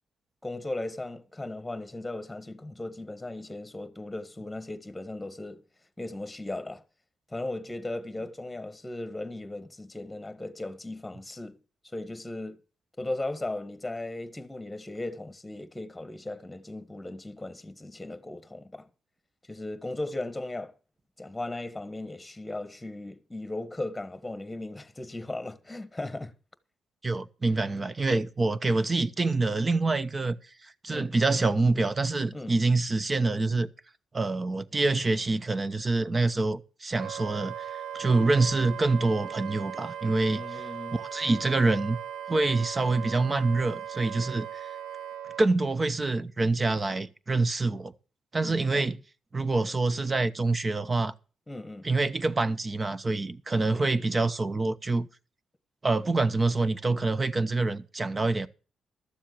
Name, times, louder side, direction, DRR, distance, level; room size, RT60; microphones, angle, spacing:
voice 1, 0.4-5.6 6.0-6.8 7.3-11.6 11.8-12.6 13.0-18.9 19.5-20.7 21.2-26.3 30.9-31.1 32.3-32.5 40.3-41.0 48.4-48.8 51.5-51.9 53.7-53.9, left 2 dB, 10° left, 1.6 m, -37 dB
voice 2, 27.0-30.4 30.6-33.7 34.1-40.4 41.0-42.0 42.3-44.7 45.4-47.9 48.3-49.0 49.3-51.1 51.8-55.1 55.8-58.5, right 3 dB, 30° right, 0.9 m, -26 dB
Wind instrument woodwind instrument, 37.0-45.5, right 9 dB, 90° right, 0.8 m, -38 dB
13.0 x 7.3 x 6.7 m
cardioid pair, 75°, 0 cm